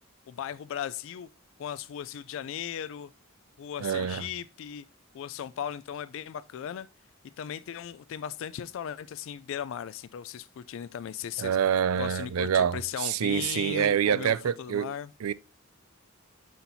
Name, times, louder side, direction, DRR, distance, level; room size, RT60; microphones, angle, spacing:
voice 1, 0.3-1.3 1.6-3.1 3.6-4.8 5.1-6.9 7.4-11.6 12.0-15.1, left 9 dB, 65° left, 0.3 m, -37 dB
voice 2, 3.8-4.2 11.4-14.9 15.2-15.3, right 8 dB, 90° right, 0.4 m, -26 dB
9.3 x 4.4 x 2.6 m
head